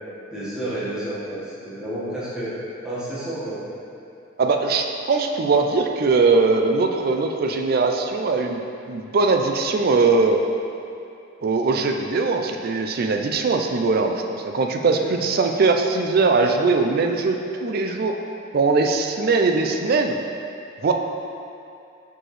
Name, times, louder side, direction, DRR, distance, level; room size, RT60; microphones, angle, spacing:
voice 1, 0.3-2.5 2.8-3.6 15.0-15.1, right 1 dB, 5° right, -11 dB, 1.4 m, -30 dB
voice 2, 4.4-8.6 8.9-10.4 11.4-18.2 18.5-20.2 20.8-20.9, right 3 dB, 50° right, 4 dB, 0.4 m, -21 dB
6.2 x 4.8 x 3.2 m, 2.6 s
head